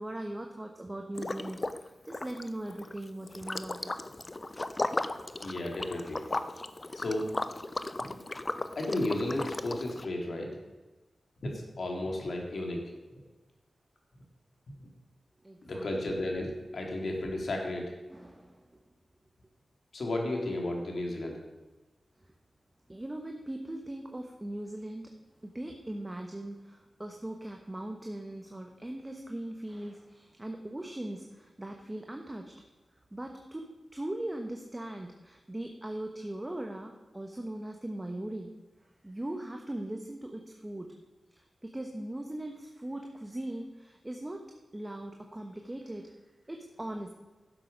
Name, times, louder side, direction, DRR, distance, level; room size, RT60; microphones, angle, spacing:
voice 1, 0.0-3.9 15.4-16.1 18.1-18.8 22.9-25.1 25.4-32.5 33.1-38.5 39.0-40.9 41.3-44.4 44.7-46.1 46.5-47.1, right 1 dB, 20° right, 3 dB, 1.1 m, -40 dB
Liquid, 1.1-1.8 2.1-10.0, left 2 dB, 35° left, 0.6 m, -36 dB
voice 2, 5.4-6.2 6.9-7.3 8.0-8.2 8.8-10.6 11.4-12.8 14.7-14.9 15.6-17.9 19.9-21.4, left 1 dB, 70° left, 1 dB, 2.4 m, -33 dB
11.5 x 7.7 x 5.2 m, 1.2 s
cardioid pair, 55°, 0 cm